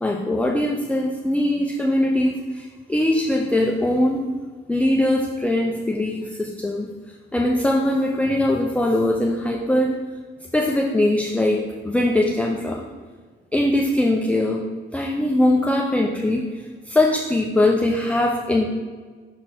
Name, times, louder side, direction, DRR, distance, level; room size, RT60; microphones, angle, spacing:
voice 1, 0.0-4.2 4.7-6.9 7.3-10.0 10.5-12.8 13.5-14.7 14.9-18.6, left 1 dB, 5° left, -1 dB, 0.6 m, -21 dB
6.1 x 4.2 x 4.4 m, 1.5 s
cardioid pair, 90°, 20 cm